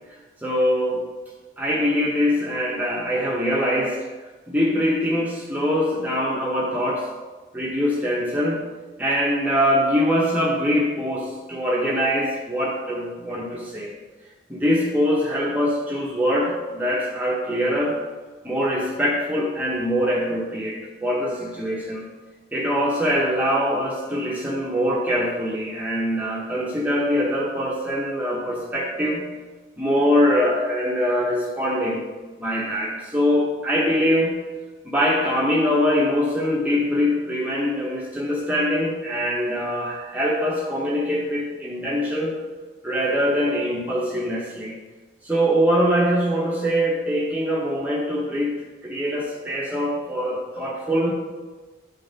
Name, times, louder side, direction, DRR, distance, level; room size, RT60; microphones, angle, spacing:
voice 1, 0.4-1.0 1.6-4.1 4.5-7.1 7.5-8.6 9.0-13.9 14.5-18.0 18.4-22.1 22.5-29.3 29.8-32.0 32.4-34.4 34.8-42.4 42.8-44.8 45.2-48.5 48.8-51.1, equal, 10° right, -4 dB, 0.8 m, -23 dB
10.5 x 3.8 x 4.0 m, 1.3 s
head